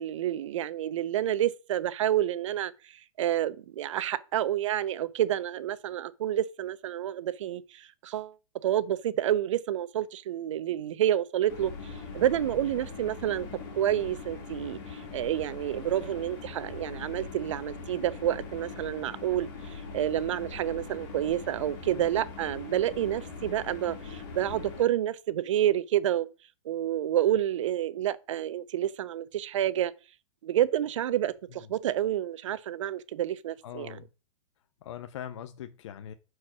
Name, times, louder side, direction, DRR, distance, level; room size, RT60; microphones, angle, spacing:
voice 1, 0.0-8.3 8.6-13.5 13.8-26.3 26.6-29.9 30.4-33.9, right 11 dB, 65° right, 0.8 m, -29 dB
sound 1, 11.5-24.8, left 4 dB, 45° left, 3.0 m, -42 dB
voice 2, 33.6-34.1 34.8-36.1, left 10 dB, 65° left, 0.8 m, -41 dB
5.7 x 4.7 x 6.1 m
supercardioid pair, 160°, 17 cm